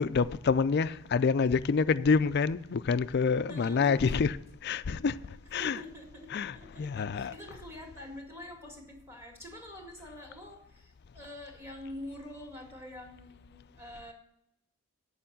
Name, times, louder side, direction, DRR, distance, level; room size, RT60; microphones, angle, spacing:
voice 1, 0.0-4.4 4.6-5.2 5.5-5.8 6.3-7.3, left 5 dB, 50° left, 0.4 m, -27 dB
voice 2, 3.5-4.3 5.6-14.1, left 1 dB, 10° right, 2.0 m, -46 dB
8.6 x 6.9 x 7.3 m
head